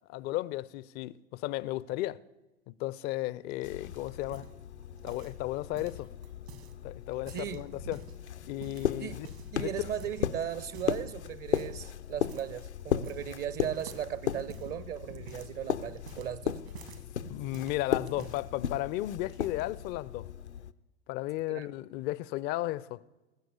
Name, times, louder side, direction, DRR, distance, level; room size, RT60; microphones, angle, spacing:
voice 1, 0.1-2.2 2.7-4.5 5.0-6.1 6.8-8.0 8.5-9.3 9.6-9.7 17.3-20.3 21.1-23.0, left 16 dB, 30° left, 0.4 m, -34 dB
sound 1, 3.5-5.4 5.7-6.7 7.1-8.2 8.6-9.6 10.0-10.2 10.7-11.1 11.5-11.8 12.3-12.5 12.8-13.4 13.7-17.1 17.5-18.4 19.1-19.6, right 7 dB, 65° right, 1.7 m, -49 dB
sound 2, 3.6-20.7, left 9 dB, 80° left, 0.6 m, -36 dB
voice 2, 7.3-7.8 8.4-8.5 9.0-9.2 9.5-16.6 17.2-17.4 21.5-21.7, right 10 dB, 30° right, 0.6 m, -37 dB
19.5 x 7.7 x 8.2 m
figure-of-eight pair, 85°, 33 cm